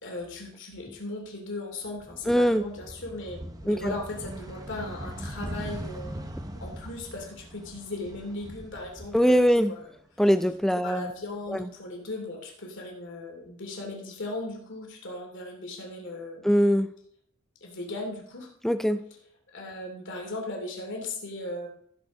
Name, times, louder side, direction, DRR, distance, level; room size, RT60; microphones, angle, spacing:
voice 1, 0.0-6.2 6.6-9.4 9.8-9.9 10.8-16.4 17.6-18.5 19.5-21.7, left 2 dB, 55° left, 1 dB, 2.8 m, -37 dB
sound 1, 1.8-10.0 10.3-11.5, right 1 dB, 15° right, 1.0 m, -41 dB
voice 2, 2.3-2.6 3.7-3.9 9.1-9.7 10.2-11.1 11.5-11.6 16.4-16.9 18.6-19.0, equal, ahead, 11 dB, 0.4 m, -22 dB
15.0 x 7.0 x 4.2 m, 0.66 s
head